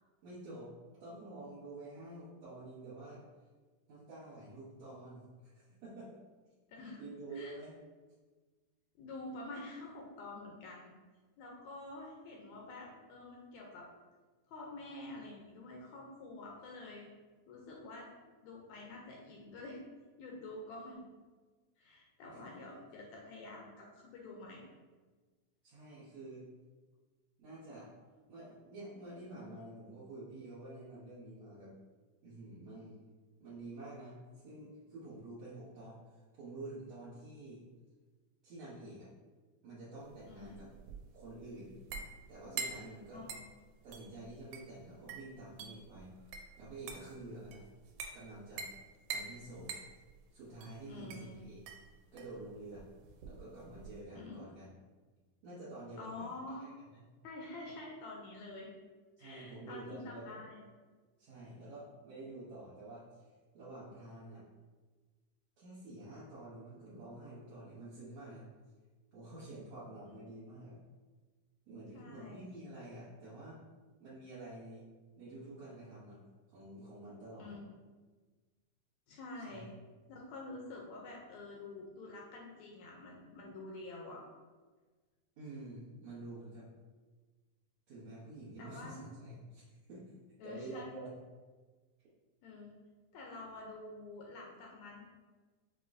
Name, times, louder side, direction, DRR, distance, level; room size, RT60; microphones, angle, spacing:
voice 1, 0.2-0.7 1.0-3.2 3.9-6.2 7.0-7.8 22.2-22.7 25.6-26.5 27.4-27.9 28.3-31.7 32.2-33.0 33.4-37.7 38.4-39.1 39.6-40.7 41.1-41.8 42.3-43.3 43.8-47.6 48.1-48.7 49.1-49.8 50.3-51.6 52.1-52.9 53.2-54.7 55.4-56.3 56.6-57.0 59.2-60.4 61.2-63.3 63.5-64.5 65.6-68.5 69.1-70.8 71.7-73.6 74.0-74.8 75.2-76.2 76.5-77.6 79.4-79.7 85.4-86.7 87.9-90.0 90.4-91.1, right 2 dB, 65° right, -10 dB, 2.0 m, -49 dB
voice 2, 9.0-10.9 11.4-13.9 14.5-17.1 17.5-18.1 18.4-19.8 20.2-21.0 21.8-24.7 40.2-40.6 43.1-43.5 50.9-51.4 54.2-54.4 56.0-56.7 57.2-58.7 59.2-60.6 70.0-70.2 71.9-72.4 77.4-77.6 79.1-79.7 80.1-84.2 88.6-89.1 90.4-91.0 92.4-92.7 93.1-95.1, left 2 dB, 80° left, -2 dB, 1.7 m, -48 dB
sound 1, 40.1-54.0, right 5 dB, 90° right, 2.1 m, -47 dB
6.1 x 2.9 x 2.6 m, 1.3 s
omnidirectional pair, 3.6 m